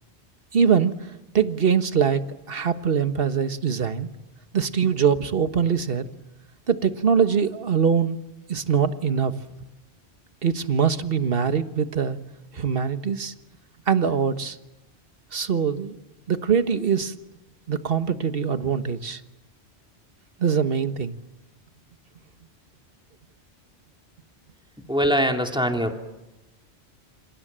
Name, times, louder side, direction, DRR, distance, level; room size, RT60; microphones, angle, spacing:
voice 1, 0.5-0.9 1.3-2.2 2.5-4.1 4.5-6.0 6.7-8.2 8.5-9.3 10.4-12.2 12.5-13.3 13.9-14.6 15.3-15.9 16.3-17.1 17.7-19.2 20.4-21.1, right 7 dB, 55° right, 10 dB, 1.6 m, -23 dB
voice 2, 24.8-26.0, equal, 5° right, 3 dB, 2.9 m, -23 dB
28.0 x 26.5 x 7.6 m, 1.0 s
omnidirectional pair, 1.1 m